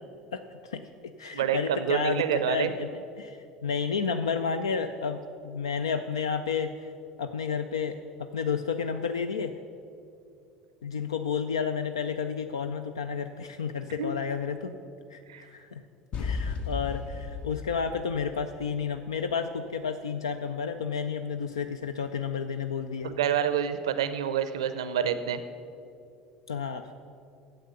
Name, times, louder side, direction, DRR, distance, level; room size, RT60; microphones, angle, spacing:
voice 1, 0.3-0.9 1.2-6.9 7.2-9.5 10.8-14.8 15.1-15.2 15.5-15.8 16.2-23.1 26.5-26.9, left 6 dB, 80° left, 8 dB, 0.3 m, -31 dB
voice 2, 1.3-2.7 14.0-14.1 15.3-15.4 23.0-25.4, right 9 dB, 80° right, 12 dB, 0.5 m, -27 dB
sound 1, 16.1-19.1, left 5 dB, 50° left, 0.7 m, -35 dB
8.9 x 7.8 x 6.7 m, 2.5 s
hypercardioid pair, 70°, 3 cm